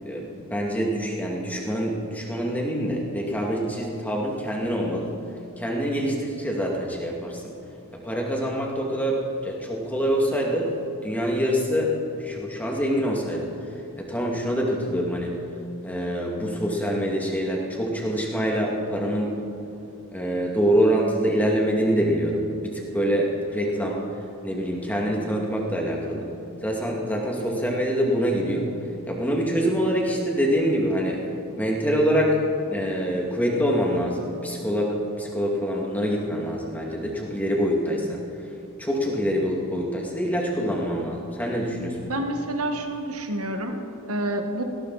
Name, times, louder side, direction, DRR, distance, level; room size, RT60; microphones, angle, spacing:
voice 1, 0.0-5.1 5.6-7.5 7.9-10.7 11.0-13.5 14.0-15.4 15.8-19.3 20.1-24.0 24.4-26.3 26.6-28.7 29.1-31.2 31.6-38.2 38.8-42.1, equal, 5° left, -2 dB, 2.3 m, -25 dB
voice 2, 42.1-43.8 44.1-44.6, right 1 dB, 75° right, 4 dB, 1.7 m, -28 dB
19.0 x 17.5 x 4.2 m, 2.6 s
head